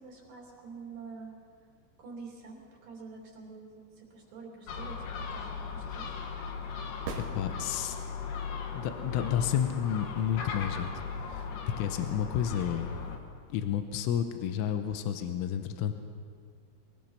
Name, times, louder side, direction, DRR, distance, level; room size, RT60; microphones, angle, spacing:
voice 1, 0.0-1.3 2.0-6.2, right 4 dB, 45° right, -1 dB, 4.2 m, -47 dB
Gull seagull, 4.7-13.2, left 5 dB, 65° left, 2.2 m, -38 dB
sound 1, 7.0-8.2 12.1-12.2, right 5 dB, 70° right, 3.9 m, -41 dB
voice 2, 7.2-8.0 8.8-10.9 11.2-11.5 11.8-12.9 13.5-15.9, left 9 dB, 85° left, 7 dB, 3.5 m, -31 dB
22.5 x 20.5 x 5.8 m, 2.1 s
omnidirectional pair, 5.7 m